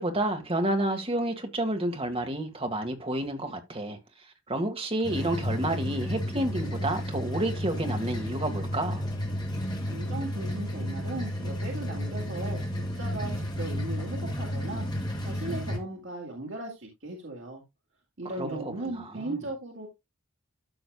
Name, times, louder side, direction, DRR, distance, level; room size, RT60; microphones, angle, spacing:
voice 1, 0.0-4.0 4.5-9.0 18.4-19.4, right 1 dB, 25° right, 1.6 m, -30 dB
sound 1, 5.0-15.8, equal, 20° left, 1.9 m, -32 dB
voice 2, 9.9-12.6 13.0-14.9 15.2-17.6 18.2-19.9, right 2 dB, 60° right, 2.0 m, -37 dB
13.0 x 6.2 x 2.2 m
head